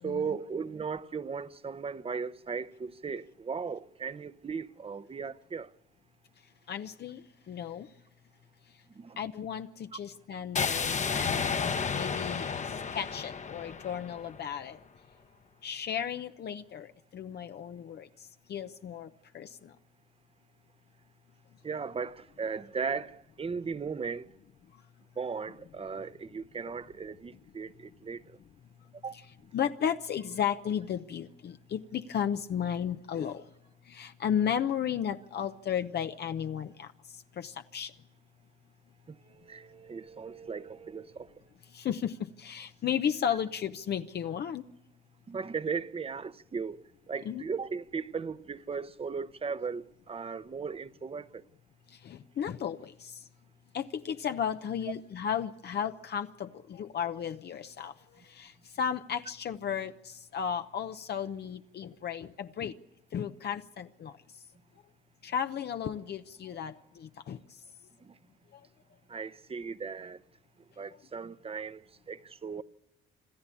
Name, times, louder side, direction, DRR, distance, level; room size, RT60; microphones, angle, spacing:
voice 1, 0.0-5.7 8.9-9.2 21.6-24.3 25.2-28.4 29.0-29.2 39.1-41.4 45.3-46.8 47.1-51.4 68.0-68.2 69.1-70.2 70.8-72.6, right 5 dB, 30° right, 0.8 m, -37 dB
voice 2, 6.7-7.9 9.2-11.5 11.9-12.6 12.9-14.8 15.6-19.7 29.5-33.5 33.9-37.9 41.7-44.6 47.2-47.4 51.9-53.3 53.7-57.9 58.2-62.7 63.1-64.2 65.2-67.4 68.5-68.6, left 8 dB, 55° left, 0.8 m, -34 dB
sound 1, 10.6-14.6, left 5 dB, 35° left, 1.1 m, -32 dB
27.0 x 13.0 x 8.5 m
cardioid pair, 90°, 20 cm